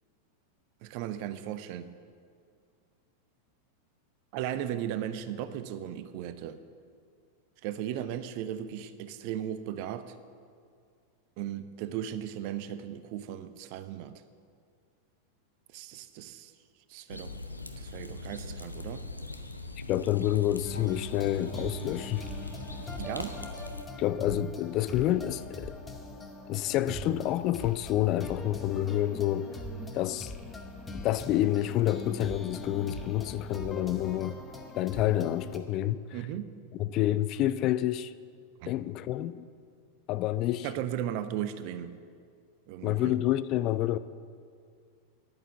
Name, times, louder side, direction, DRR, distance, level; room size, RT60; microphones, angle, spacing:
voice 1, 0.8-1.9 4.3-6.6 7.6-10.2 11.4-14.2 15.7-16.5 16.9-17.3 17.8-19.0 23.0-23.4 36.1-36.6 38.6-38.7 40.6-41.9 42.7-43.2, right 10 dB, 45° right, 0.7 m, -36 dB
sound 1, 17.1-23.9, left 2 dB, 85° left, 0.7 m, -41 dB
voice 2, 19.9-22.3 24.0-25.8 26.5-29.6 29.9-30.3 30.9-34.4 34.8-36.2 36.8-38.1 38.6-39.5 40.1-40.7 42.8-44.0, left 13 dB, 40° left, 0.3 m, -28 dB
sound 2, 20.6-35.6, left 1 dB, 15° left, 1.1 m, -42 dB
11.0 x 8.9 x 7.1 m
figure-of-eight pair, 90°, 0 cm